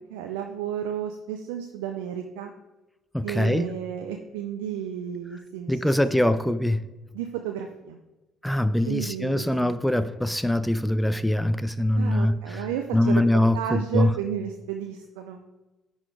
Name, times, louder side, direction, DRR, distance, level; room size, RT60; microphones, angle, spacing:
voice 1, 0.1-2.5 3.2-5.9 7.1-8.0 8.8-9.8 11.9-15.4, right 9 dB, 80° right, 4 dB, 0.5 m, -32 dB
voice 2, 3.1-3.7 5.7-6.9 8.4-12.7 12.9-14.1, left 1 dB, 5° left, 13 dB, 0.5 m, -23 dB
10.0 x 4.0 x 4.8 m, 1.1 s
hypercardioid pair, 55°, 0 cm